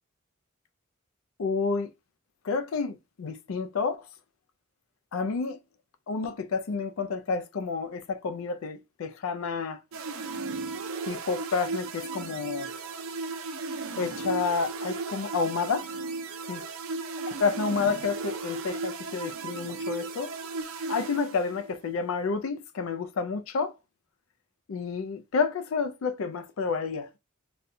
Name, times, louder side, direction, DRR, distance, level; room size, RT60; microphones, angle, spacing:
voice 1, 1.4-1.9 2.4-4.1 5.1-5.6 6.1-9.8 11.1-12.7 14.0-15.9 16.5-16.6 17.4-20.3 20.9-23.7 24.7-27.2, left 5 dB, 70° left, 0.4 m, -30 dB
sound 1, 9.9-21.8, right 4 dB, 70° right, 0.5 m, -35 dB
4.1 x 2.3 x 2.6 m
head